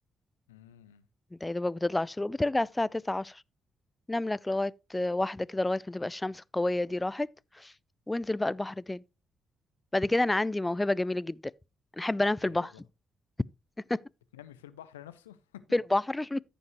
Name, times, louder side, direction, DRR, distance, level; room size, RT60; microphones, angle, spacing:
voice 1, 0.5-1.1 12.4-12.7 14.3-15.6, left 11 dB, 85° left, 0.5 m, -49 dB
voice 2, 1.4-3.4 4.1-7.3 7.5-7.7 8.1-9.0 9.9-11.4 12.0-12.7 13.9-14.0 15.7-16.4, left 2 dB, 15° left, 0.3 m, -29 dB
14.0 x 5.2 x 3.0 m
figure-of-eight pair, 40°, 0 cm